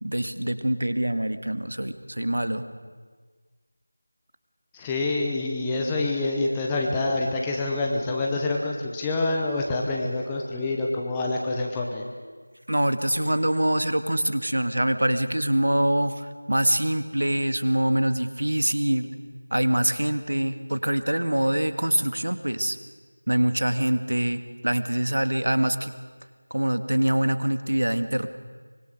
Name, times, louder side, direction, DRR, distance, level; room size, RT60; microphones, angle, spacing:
voice 1, 0.0-2.6 12.7-19.1 19.5-22.8 23.3-25.9 26.5-28.3, right 1 dB, 85° right, 10 dB, 1.9 m, -24 dB
voice 2, 4.7-12.0, left 2 dB, 5° left, -1 dB, 0.8 m, -26 dB
24.5 x 23.0 x 6.7 m, 1.5 s
figure-of-eight pair, 180°, 0 cm